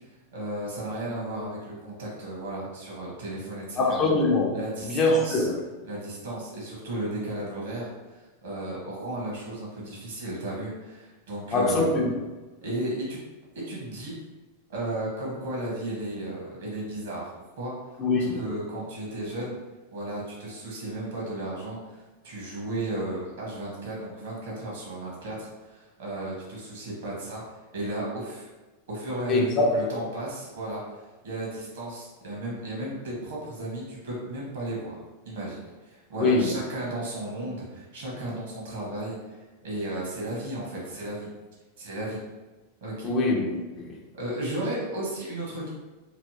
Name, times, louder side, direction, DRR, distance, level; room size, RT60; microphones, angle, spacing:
voice 1, 0.3-4.1 4.5-5.4 5.8-12.0 12.6-13.2 13.5-14.1 14.7-17.3 17.6-17.7 18.1-19.6 19.9-27.4 27.7-28.5 28.9-30.8 31.2-35.0 35.2-41.3 41.8-42.2 42.8-43.1 44.1-45.7, right 1 dB, 60° right, 1.2 m, -34 dB
voice 2, 3.8-4.5 4.8-5.6 11.5-12.1 18.0-18.5 29.3-29.7 36.1-36.6 43.0-44.0, left 2 dB, 30° left, 0.5 m, -23 dB
3.2 x 2.8 x 2.7 m
figure-of-eight pair, 90°, 0 cm